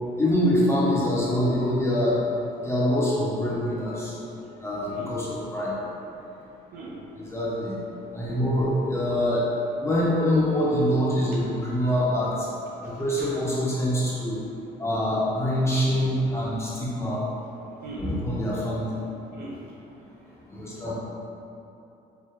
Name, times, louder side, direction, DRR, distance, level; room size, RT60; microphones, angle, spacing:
voice 1, 0.2-2.2 2.6-4.1 4.6-5.7 7.2-7.8 8.1-9.5 9.8-12.3 13.0-14.4 14.8-17.2 18.0-18.9 20.6-20.9, equal, 15° left, -8 dB, 0.7 m, -24 dB
voice 2, 12.7-13.3 17.8-18.1 19.3-19.6 20.2-20.3 20.7-20.8, right 3 dB, 70° right, -5 dB, 0.7 m, -42 dB
4.4 x 2.2 x 3.5 m, 3.0 s
cardioid pair, 110°, 17 cm